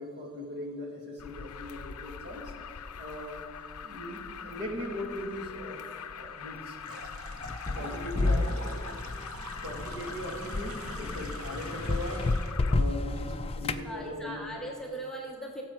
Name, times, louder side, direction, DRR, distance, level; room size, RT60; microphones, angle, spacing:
voice 1, 0.0-2.5 2.9-3.5 3.8-5.8 6.1-7.1 7.7-8.5 9.6-12.3 12.7-14.6, left 1 dB, 45° right, 0 dB, 1.9 m, -39 dB
Alarm, 1.2-12.7, left 7 dB, 80° left, 0.5 m, -43 dB
sound 1, 6.8-12.7, right 3 dB, 75° right, 0.9 m, -46 dB
sound 2, 7.3-13.9, left 2 dB, 25° left, 0.4 m, -31 dB
voice 2, 8.3-8.9 13.8-15.6, right 1 dB, 5° left, -2 dB, 0.9 m, -40 dB
17.0 x 7.4 x 4.5 m, 2.2 s
head